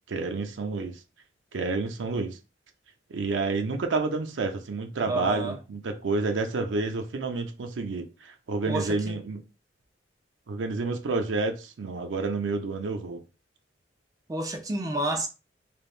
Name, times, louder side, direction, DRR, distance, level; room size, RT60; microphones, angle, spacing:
voice 1, 0.1-1.0 1.5-2.4 3.1-9.4 10.5-13.2, right 3 dB, 85° right, 0.5 m, -29 dB
voice 2, 5.1-5.6 8.7-9.2 14.3-15.3, right 2 dB, 20° right, 0.3 m, -30 dB
3.3 x 2.0 x 2.4 m
head